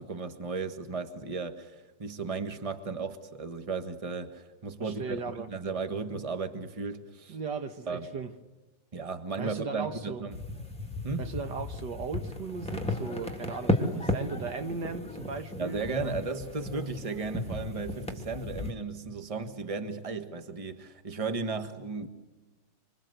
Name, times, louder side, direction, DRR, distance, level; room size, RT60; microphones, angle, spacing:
voice 1, 0.0-7.4 7.9-8.1 8.9-10.4 11.0-11.2 15.6-22.1, right 4 dB, 20° right, 1.5 m, -35 dB
voice 2, 4.8-5.5 7.3-8.3 9.4-10.2 11.2-16.2, right 4 dB, 65° right, 1.9 m, -37 dB
sound 1, 10.3-18.7, left 1 dB, 5° left, 2.7 m, -34 dB
26.5 x 26.5 x 8.0 m
omnidirectional pair, 2.0 m